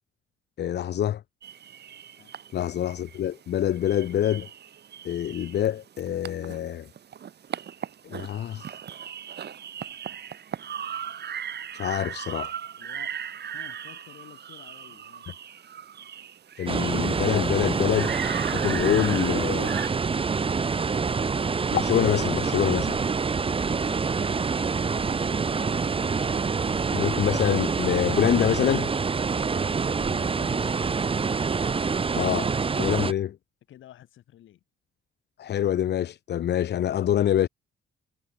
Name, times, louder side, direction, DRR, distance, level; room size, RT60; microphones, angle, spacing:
voice 1, 0.6-1.2 2.5-4.5 5.0-6.9 8.0-8.7 11.7-12.5 16.6-18.2 18.5-19.8 21.7-23.0 26.9-28.9 32.2-32.5 32.8-33.3 35.4-37.5, left 11 dB, 60° left, 0.8 m, -25 dB
sound 1, 1.4-19.9, right 8 dB, 55° right, 4.2 m, -38 dB
voice 2, 12.8-13.2 13.5-15.3 29.4-30.8 32.8-33.1 33.7-34.6, left 12 dB, 75° left, 7.2 m, -51 dB
sound 2, 16.7-33.1, right 5 dB, 25° right, 1.0 m, -26 dB
cardioid pair, 90°, 20 cm